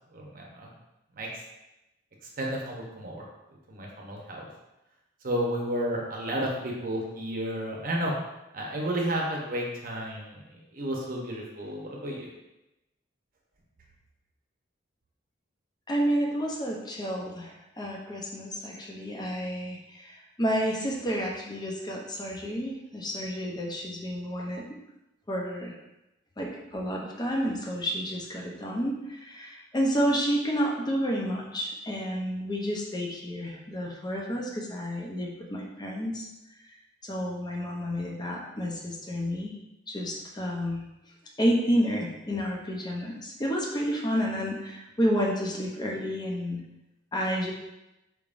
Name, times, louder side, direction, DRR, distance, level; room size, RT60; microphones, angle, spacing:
voice 1, 0.1-0.7 1.1-1.3 2.4-3.3 3.7-4.5 5.2-8.1 8.5-12.3, right 1 dB, 50° right, -1 dB, 0.8 m, -32 dB
voice 2, 15.9-24.6 25.3-25.8 26.4-36.3 37.0-39.5 39.9-40.8 41.4-46.6 47.1-47.5, equal, 20° left, -1 dB, 0.6 m, -30 dB
4.6 x 3.5 x 2.5 m, 0.94 s
head